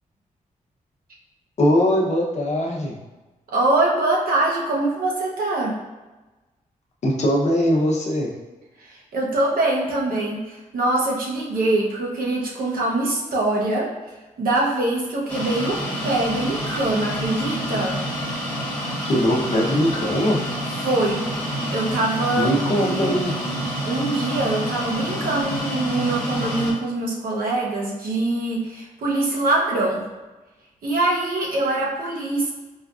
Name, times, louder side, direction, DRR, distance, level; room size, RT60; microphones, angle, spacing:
voice 1, 1.6-3.0 7.0-8.3 19.0-20.4 22.4-23.4, equal, 50° left, -2 dB, 0.7 m, -21 dB
voice 2, 3.5-5.8 8.8-13.9 14.4-18.0 20.8-21.2 21.7-22.5 22.8-23.1 23.8-30.1 30.8-32.5, right 2 dB, 80° right, -3 dB, 0.8 m, -23 dB
sound 1, 15.3-26.7, equal, 15° left, 1.1 m, -28 dB
4.3 x 2.3 x 2.4 m, 1.2 s
wide cardioid pair, 120°, 14 cm